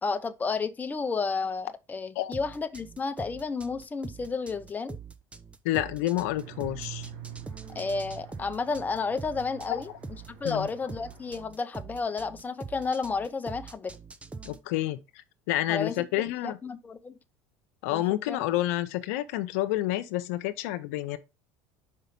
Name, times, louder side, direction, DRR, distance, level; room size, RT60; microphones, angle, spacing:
voice 1, 0.0-5.0 7.7-14.0 15.7-17.1 17.9-18.4, left 4 dB, 20° left, 0.8 m, -32 dB
sound 1, 2.3-14.6, right 4 dB, 15° right, 0.7 m, -44 dB
voice 2, 5.6-7.1 10.4-10.7 14.4-15.0 15.5-16.6 17.8-21.2, left 15 dB, 80° left, 0.7 m, -29 dB
sound 2, 6.4-11.4, right 9 dB, 75° right, 1.5 m, -45 dB
5.5 x 5.1 x 5.2 m
supercardioid pair, 95°, 8 cm